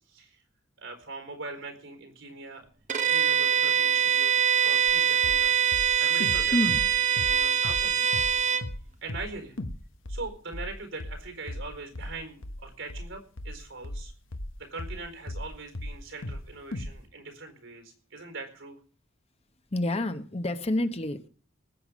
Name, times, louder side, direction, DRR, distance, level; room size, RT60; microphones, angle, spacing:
voice 1, 0.1-0.4 0.8-2.7 3.0-5.6 6.0-6.7 7.1-8.2 9.0-9.5 10.1-14.1 14.6-18.8, right 3 dB, 80° right, 5 dB, 4.6 m, -41 dB
Bowed string instrument, 2.9-8.7, right 8 dB, 40° right, 1.0 m, -24 dB
sound 1, 4.9-5.0 5.2-5.4 5.7-7.9 8.1-8.4 8.6-8.8 9.1-9.3 9.6-9.8 10.1-15.5 15.7-16.4 16.7-16.9, left 1 dB, 75° left, 1.3 m, -36 dB
voice 2, 6.5-6.8 19.7-21.3, left 1 dB, 30° left, 9 dB, 1.0 m, -28 dB
19.5 x 8.0 x 5.2 m, 0.42 s
head